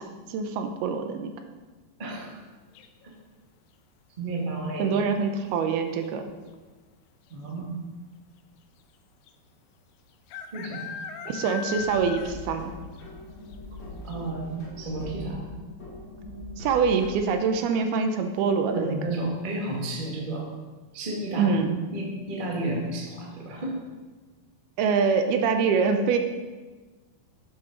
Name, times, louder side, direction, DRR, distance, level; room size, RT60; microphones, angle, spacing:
voice 1, 0.0-1.3 4.8-6.2 11.3-12.7 16.6-19.0 21.4-21.7 24.8-26.2, right 5 dB, 75° right, 6 dB, 2.7 m, -25 dB
voice 2, 2.0-2.4 3.0-3.1 4.2-4.9 7.3-7.7 10.5-10.9 14.0-15.5 18.6-20.5 20.9-21.7 21.9-23.8, right 2 dB, 50° right, -1 dB, 0.6 m, -32 dB
sound 1, 2.8-3.2 5.0-5.4 5.7-5.8 6.0-6.6 7.3-7.4 7.6-7.7 9.3-9.4 10.3-12.6 13.0-13.1 13.5-13.6 14.1-14.2, left 8 dB, 90° left, 2.9 m, -38 dB
sound 2, 11.6-17.3, left 2 dB, 45° left, 3.6 m, -41 dB
12.0 x 8.6 x 5.1 m, 1.3 s
omnidirectional pair, 4.7 m